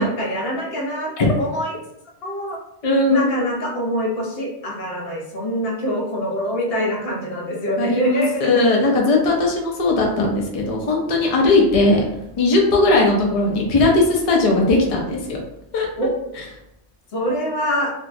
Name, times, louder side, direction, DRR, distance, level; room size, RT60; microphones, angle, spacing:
voice 1, 0.0-1.8 2.2-2.6 3.1-9.0 16.0-16.1 17.1-17.9, equal, 65° left, -2 dB, 1.0 m, -24 dB
voice 2, 2.8-3.3 7.8-12.0 12.4-15.4 15.7-15.9, left 2 dB, 45° left, 0 dB, 0.5 m, -18 dB
2.9 x 2.6 x 2.6 m, 0.85 s
omnidirectional pair, 1.1 m